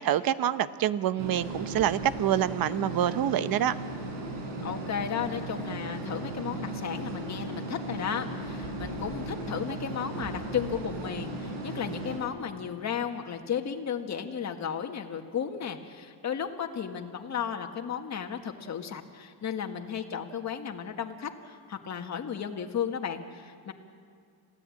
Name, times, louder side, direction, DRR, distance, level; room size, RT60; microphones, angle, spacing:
voice 1, 0.0-3.7, right 11 dB, 55° right, 14 dB, 0.9 m, -26 dB
sound 1, 1.2-12.2, right 2 dB, 80° right, 5.5 m, -36 dB
voice 2, 4.6-23.7, left 7 dB, 40° left, 4 dB, 1.8 m, -34 dB
27.5 x 16.5 x 8.6 m, 2.3 s
cardioid pair, 130°, 42 cm